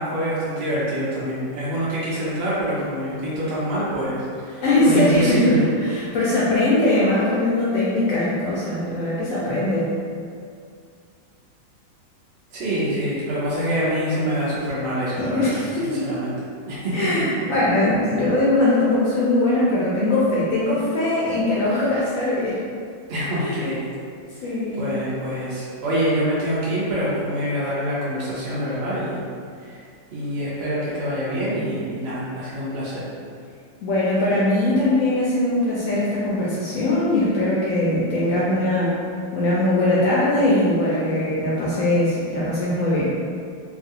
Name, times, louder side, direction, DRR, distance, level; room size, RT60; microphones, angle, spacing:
voice 1, 0.0-5.6 12.5-15.5 15.8-16.3 16.7-17.2 23.1-23.8 24.4-24.5 24.8-29.2 29.6-29.8 30.1-33.1, equal, 70° right, -9 dB, 0.6 m, -25 dB
voice 2, 4.6-9.9 15.2-16.1 16.9-22.6 23.4-23.7 24.4-24.9 33.8-38.9 39.3-43.1, left 1 dB, 75° left, -8 dB, 0.8 m, -21 dB
3.0 x 2.3 x 2.7 m, 2.3 s
omnidirectional pair, 1.9 m